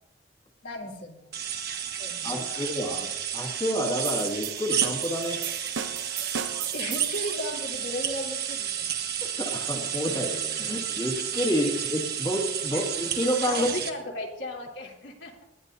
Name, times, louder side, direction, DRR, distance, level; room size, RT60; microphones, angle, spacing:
voice 1, 0.6-1.3 2.0-2.7 6.7-8.9 12.7-12.9 13.5-15.3, left 1 dB, 80° left, -2 dB, 3.4 m, -36 dB
sound 1, 1.3-13.9, right 9 dB, 60° right, 1.5 m, -31 dB
voice 2, 2.2-5.4 9.2-13.7, equal, 25° left, -1 dB, 2.0 m, -29 dB
sound 2, 4.0-7.3, right 7 dB, 90° right, 0.9 m, -36 dB
20.0 x 12.5 x 2.7 m, 0.87 s
head